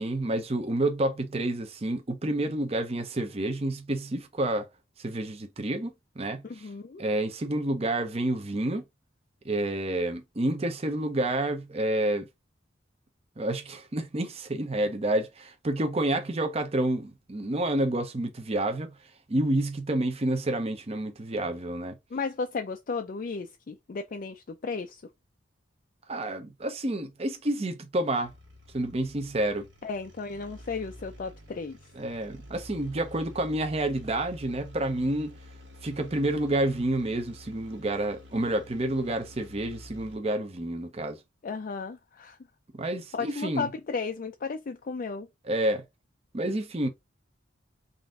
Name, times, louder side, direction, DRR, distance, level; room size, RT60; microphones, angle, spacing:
voice 1, 0.0-4.7 5.0-6.7 7.0-8.8 9.4-12.3 13.4-19.0 19.3-22.0 26.1-28.3 28.7-29.7 31.9-35.4 35.8-41.2 42.7-43.7 45.4-45.8 46.3-46.9, right 1 dB, 30° right, 0.6 m, -29 dB
voice 2, 6.4-7.0 22.1-25.0 29.8-31.8 41.4-42.4 43.1-45.3, left 4 dB, 45° left, 0.4 m, -34 dB
sound 1, 28.2-40.3, left 1 dB, 75° right, 1.7 m, -49 dB
3.9 x 2.6 x 3.6 m
head